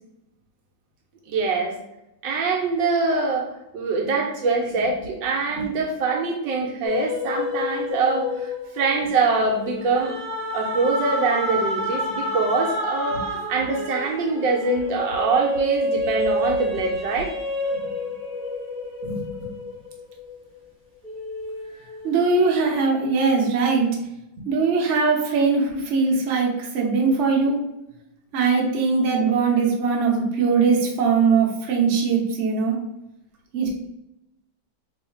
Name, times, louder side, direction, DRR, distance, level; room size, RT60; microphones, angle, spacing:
voice 1, 1.3-1.7 2.2-10.1 10.5-13.2 13.5-17.3, right 4 dB, 70° right, 0 dB, 1.2 m, -24 dB
sound 1, 6.8-20.6 21.0-22.7, left 1 dB, 5° right, 0.6 m, -29 dB
voice 2, 19.0-19.5 22.0-24.0 24.5-27.6 28.3-32.8 33.5-33.7, right 4 dB, 50° right, -1 dB, 0.9 m, -21 dB
3.1 x 2.7 x 4.4 m, 0.88 s
omnidirectional pair, 2.2 m